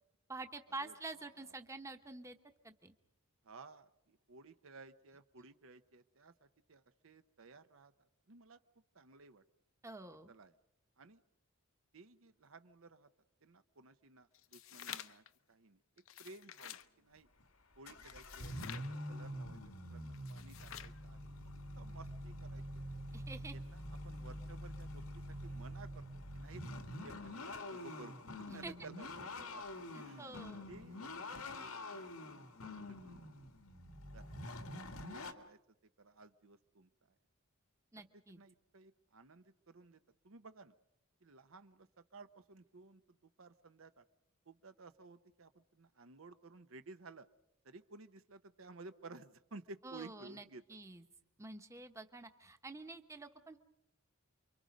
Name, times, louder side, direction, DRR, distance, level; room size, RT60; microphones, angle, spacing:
voice 1, 0.3-2.4 2.6-2.9 9.8-10.3 23.1-23.6 28.5-28.7 30.2-30.7 37.9-38.4 49.8-51.0 51.4-53.6, right 2 dB, 15° right, 7 dB, 1.0 m, -48 dB
voice 2, 3.4-7.9 8.3-8.6 8.9-9.4 10.3-10.5 11.0-11.2 11.9-13.1 13.4-15.8 16.2-17.3 17.8-21.3 21.8-23.0 23.5-26.1 26.3-26.7 27.0-30.4 30.7-33.3 34.1-34.3 34.6-35.6 36.0-36.9 38.3-40.7 41.2-44.0 44.5-47.3 47.6-50.6, right 3 dB, 70° right, 10 dB, 0.9 m, -56 dB
sound 1, 14.3-15.3 16.0-16.9 18.0-18.9 20.1-21.0, left 10 dB, 65° left, 0.8 m, -50 dB
sound 2, 17.2-17.4 17.9-35.3, left 1 dB, 90° left, 2.0 m, -46 dB
29.0 x 24.0 x 5.2 m, 0.82 s
head